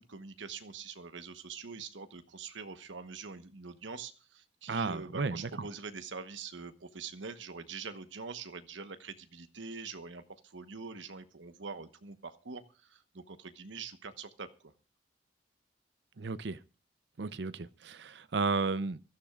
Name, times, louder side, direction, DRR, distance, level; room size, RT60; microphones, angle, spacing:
voice 1, 0.0-14.7, right 5 dB, 80° right, 1.1 m, -44 dB
voice 2, 4.7-5.5 16.2-16.6 17.2-19.0, right 4 dB, 65° right, 0.6 m, -33 dB
24.0 x 13.5 x 2.4 m
head